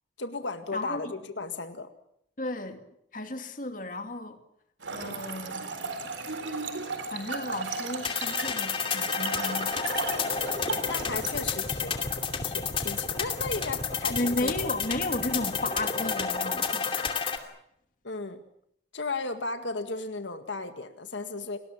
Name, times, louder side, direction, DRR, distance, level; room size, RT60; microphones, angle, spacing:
voice 1, 0.2-1.9 10.8-12.1 12.4-14.8 18.0-18.4 18.9-21.6, left 3 dB, 85° left, 1.9 m, -35 dB
voice 2, 2.4-2.8 3.1-4.4 4.9-5.8 7.1-9.8 14.1-17.5, left 2 dB, 45° left, 2.5 m, -34 dB
Trickle dribble / Fill (with liquid), 4.8-11.4, right 4 dB, 85° right, 3.7 m, -36 dB
sound 1, 8.0-17.4, left 6 dB, 30° left, 2.6 m, -30 dB
29.5 x 20.0 x 7.3 m
head